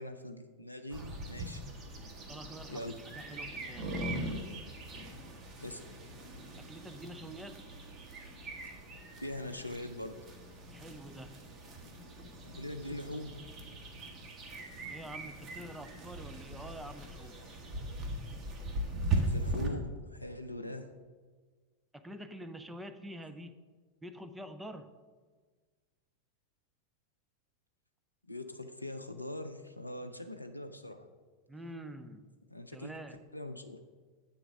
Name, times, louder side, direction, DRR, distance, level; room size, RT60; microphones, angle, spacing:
voice 1, 0.0-1.6 2.7-3.0 5.6-5.8 9.2-10.2 12.4-13.3 19.1-20.9 28.3-31.1 32.5-32.9 33.3-33.8, left 1 dB, 85° left, 7 dB, 0.4 m, -42 dB
sound 1, 0.9-19.7, right 2 dB, 30° right, 1.2 m, -40 dB
voice 2, 2.3-4.0 6.6-7.7 10.7-11.5 14.9-17.4 20.8-20.9 21.9-23.5 24.0-24.9 31.5-32.3 32.7-33.2, right 1 dB, 5° right, 9 dB, 0.4 m, -47 dB
8.5 x 3.9 x 5.9 m, 1.4 s
figure-of-eight pair, 90°, 0 cm